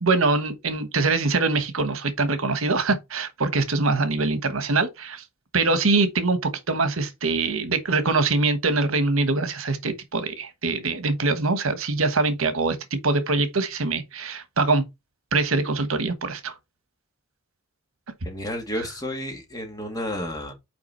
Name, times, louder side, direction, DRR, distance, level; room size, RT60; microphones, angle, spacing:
voice 1, 0.0-5.2 5.5-14.8 15.3-16.6, right 3 dB, 80° right, 1.2 m, -23 dB
voice 2, 18.2-20.5, left 1 dB, 20° left, 1.9 m, -31 dB
5.8 x 4.7 x 4.4 m
head